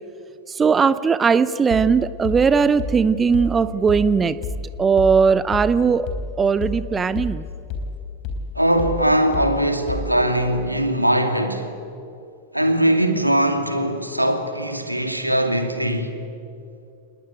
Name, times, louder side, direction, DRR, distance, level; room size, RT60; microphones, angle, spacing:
voice 1, 0.5-4.4 4.8-6.1 6.4-7.4, right 5 dB, 20° right, 0.7 m, -18 dB
sound 1, 1.7-10.4, left 3 dB, 40° left, 4.2 m, -31 dB
voice 2, 8.5-11.7 12.5-16.2, right 1 dB, 90° right, 2.3 m, -21 dB
28.5 x 20.0 x 9.2 m
figure-of-eight pair, 90°, 0 cm